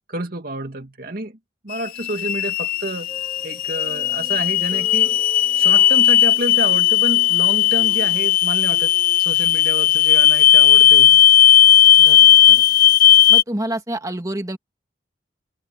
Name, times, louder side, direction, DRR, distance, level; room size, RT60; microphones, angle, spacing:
voice 1, 0.1-1.4 1.6-3.1 3.4-5.2 5.6-8.9 9.2-11.2, right 1 dB, 55° right, 2.3 m, -29 dB
sound 1, 1.7-13.4, left 11 dB, 50° left, 0.5 m, -15 dB
sound 2, 2.7-9.2, left 1 dB, 10° left, 3.9 m, -44 dB
voice 2, 12.0-12.6 13.3-14.6, right 1 dB, 20° right, 2.2 m, -28 dB
head